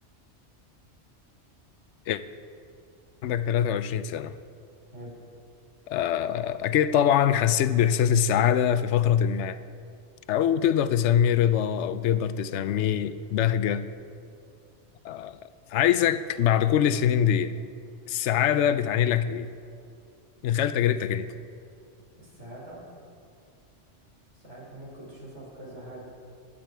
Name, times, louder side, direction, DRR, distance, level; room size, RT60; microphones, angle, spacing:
voice 1, 3.2-4.4 5.9-9.6 10.3-13.9 15.0-15.4 15.7-17.6 18.1-19.5 20.4-21.3, left 9 dB, 80° left, 13 dB, 0.9 m, -23 dB
voice 2, 22.2-22.8 24.3-26.0, right 1 dB, 90° right, -5 dB, 4.3 m, -43 dB
20.5 x 8.6 x 4.5 m, 2.5 s
omnidirectional pair, 1.2 m